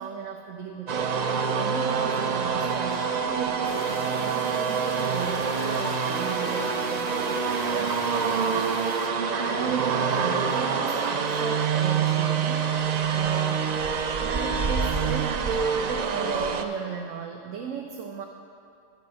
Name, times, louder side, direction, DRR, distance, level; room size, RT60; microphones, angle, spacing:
voice 1, 0.0-13.7 14.2-18.2, right 6 dB, 85° right, 2 dB, 1.0 m, -35 dB
sound 1, 0.9-16.6, right 6 dB, 70° right, 0.4 m, -26 dB
sound 2, 3.6-9.1, left 7 dB, 65° left, 0.7 m, -42 dB
sound 3, 6.0-8.9, right 3 dB, 50° right, 0.8 m, -40 dB
10.0 x 5.7 x 6.3 m, 2.4 s
omnidirectional pair, 1.3 m